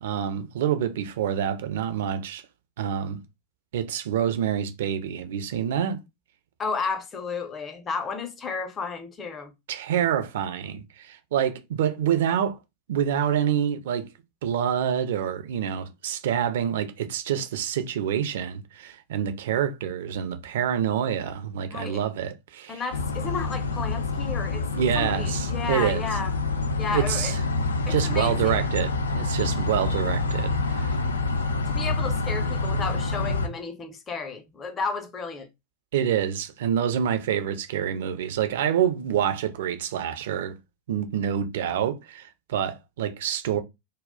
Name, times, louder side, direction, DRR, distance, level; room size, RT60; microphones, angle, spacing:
voice 1, 0.0-2.4 2.8-3.2 3.7-6.0 9.7-12.6 12.9-14.1 14.4-22.8 24.7-26.0 26.9-27.4 27.9-31.0 35.9-40.5 40.9-43.6, right 9 dB, 55° right, 0.4 m, -27 dB
voice 2, 6.6-9.5 21.7-22.0 22.7-24.7 24.9-26.3 26.8-27.3 27.9-28.7 31.7-35.5, left 4 dB, 20° left, 0.6 m, -32 dB
sound 1, 22.9-33.5, left 3 dB, 70° left, 0.4 m, -27 dB
2.2 x 2.0 x 3.6 m
figure-of-eight pair, 90°, 0 cm